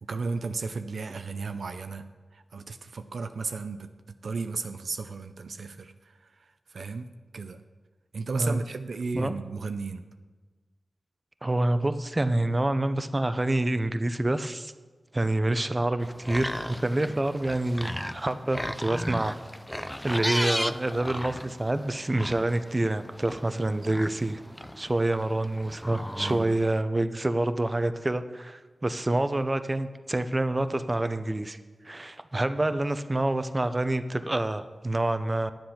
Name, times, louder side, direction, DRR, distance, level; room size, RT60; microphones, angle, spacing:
voice 1, 0.0-2.0 2.3-3.9 4.2-7.1 7.3-7.6 8.1-10.0 23.5-23.9 26.2-26.6, right 4 dB, 80° right, 8 dB, 0.5 m, -34 dB
voice 2, 11.4-14.7 15.1-19.4 20.0-24.4 24.8-31.6 31.8-35.5, right 1 dB, 30° right, 11 dB, 0.7 m, -27 dB
sound 1, 16.0-26.8, equal, 5° left, 0.5 m, -36 dB
10.5 x 7.8 x 5.8 m, 1.3 s
cardioid pair, 40°, 0 cm